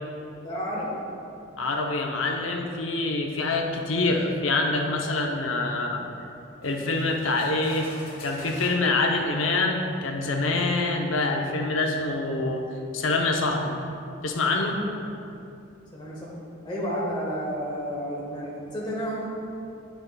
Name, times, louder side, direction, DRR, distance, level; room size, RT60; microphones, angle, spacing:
voice 1, 0.4-0.9 15.9-16.3 16.6-19.3, equal, 25° left, -6 dB, 0.9 m, -31 dB
voice 2, 1.6-6.0 6.6-7.9 8.2-12.6 12.9-13.8 14.2-14.8, left 2 dB, 85° left, 2 dB, 0.7 m, -25 dB
sound 1, 6.6-8.9 9.8-9.9 10.5-10.7, left 2 dB, 45° left, 1.5 m, -46 dB
9.2 x 6.1 x 2.3 m, 2.6 s
head